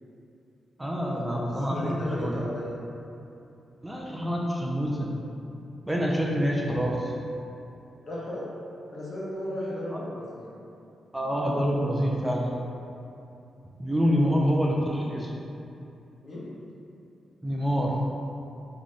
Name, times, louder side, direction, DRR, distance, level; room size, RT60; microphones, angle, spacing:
voice 1, 0.8-2.4 3.8-5.2 5.9-7.1 9.9-10.0 11.1-12.6 13.8-15.3 17.4-18.1, equal, 10° right, -2 dB, 0.5 m, -26 dB
voice 2, 1.6-2.7 8.0-8.5 8.9-10.5 16.2-16.5, left 1 dB, 55° left, -7 dB, 1.2 m, -34 dB
3.7 x 3.1 x 3.8 m, 2.7 s
cardioid pair, 80°, 0 cm